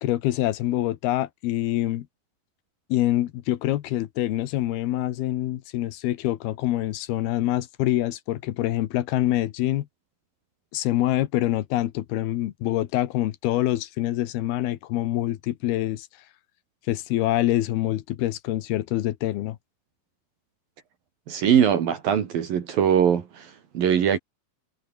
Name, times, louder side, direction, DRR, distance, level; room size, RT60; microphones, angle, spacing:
voice 1, 0.0-2.1 2.9-9.9 10.7-16.1 16.9-19.6, left 14 dB, 85° left, 3.1 m, -25 dB
voice 2, 21.3-24.2, right 8 dB, 70° right, 4.1 m, -22 dB
omnidirectional pair, 4.4 m